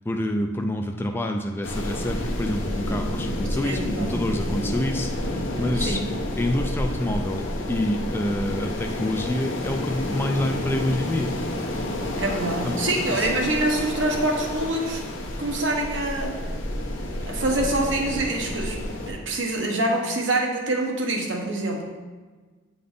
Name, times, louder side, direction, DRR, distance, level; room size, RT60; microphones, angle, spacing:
voice 1, 0.1-6.0 6.4-11.3 12.6-12.8 13.1-13.3, left 1 dB, 10° left, 3 dB, 0.3 m, -27 dB
sound 1, 1.6-19.1, left 1 dB, 90° left, 1.0 m, -29 dB
voice 2, 3.5-4.1 5.8-6.0 12.2-15.0 15.4-16.4 17.3-22.0, right 2 dB, 75° right, 0 dB, 1.1 m, -26 dB
8.6 x 3.9 x 3.6 m, 1.3 s
head